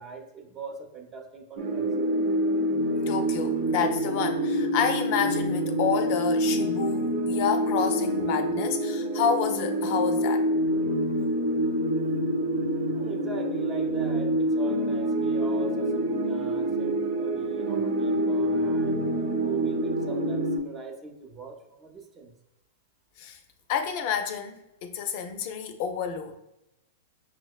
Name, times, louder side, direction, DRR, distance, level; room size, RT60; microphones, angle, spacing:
voice 1, 0.0-1.9 12.9-19.1 19.4-22.3, right 4 dB, 25° right, 3 dB, 0.7 m, -41 dB
sound 1, 1.6-20.6, right 1 dB, 60° right, 0.7 m, -26 dB
voice 2, 3.1-10.5 23.2-23.4 23.7-26.4, left 7 dB, 55° left, 6 dB, 0.5 m, -29 dB
6.1 x 2.0 x 2.3 m, 0.90 s
hypercardioid pair, 130°, 0 cm